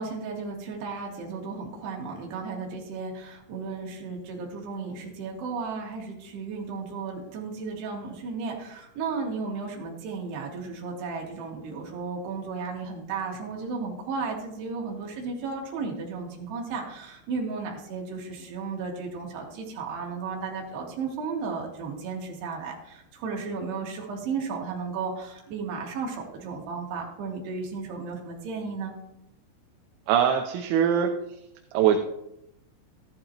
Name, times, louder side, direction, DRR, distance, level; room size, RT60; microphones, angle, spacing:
voice 1, 0.0-29.0, right 4 dB, 65° right, -1 dB, 3.7 m, -34 dB
voice 2, 30.1-31.1 31.7-32.0, right 9 dB, 80° right, 4 dB, 3.0 m, -21 dB
14.0 x 11.5 x 3.0 m, 0.83 s
omnidirectional pair, 5.6 m